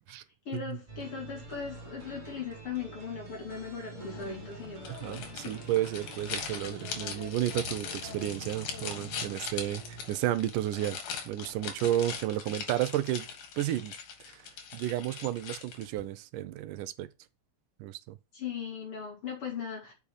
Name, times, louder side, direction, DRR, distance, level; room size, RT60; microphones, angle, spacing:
voice 1, 0.1-5.5 18.3-19.9, left 6 dB, 45° left, 3.3 m, -39 dB
sound 1, 0.9-10.7, right 4 dB, 50° right, 0.5 m, -47 dB
sound 2, 3.9-9.4, left 10 dB, 65° left, 1.7 m, -49 dB
sound 3, 4.8-16.0, left 6 dB, 90° left, 3.4 m, -41 dB
voice 2, 4.9-11.0 11.3-13.3 13.6-13.9 14.3-17.1 17.8-18.2, right 13 dB, 85° right, 2.3 m, -32 dB
7.1 x 5.2 x 6.5 m
omnidirectional pair, 3.7 m